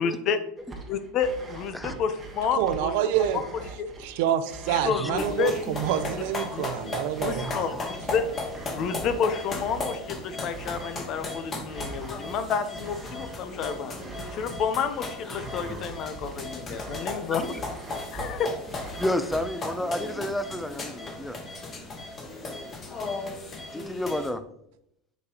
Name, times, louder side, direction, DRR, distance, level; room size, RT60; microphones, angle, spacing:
voice 1, 0.0-0.4 0.9-2.9 3.2-3.3 3.8-3.9 4.7-5.5 6.5-6.7 7.2-8.3 8.7-13.9 14.3-17.6 18.1-18.5, left 6 dB, 45° left, 10 dB, 0.7 m, -30 dB
sound 1, 0.6-19.8, right 3 dB, 15° right, 1.1 m, -43 dB
voice 2, 2.6-3.4 4.0-7.7, right 10 dB, 65° right, 11 dB, 0.6 m, -27 dB
sound 2, 5.2-24.3, left 2 dB, 25° left, 1.3 m, -36 dB
voice 3, 7.4-7.8 19.0-21.4 23.7-24.4, left 1 dB, 5° left, 11 dB, 0.5 m, -30 dB
8.0 x 5.2 x 2.9 m, 0.76 s
supercardioid pair, 130°, 0 cm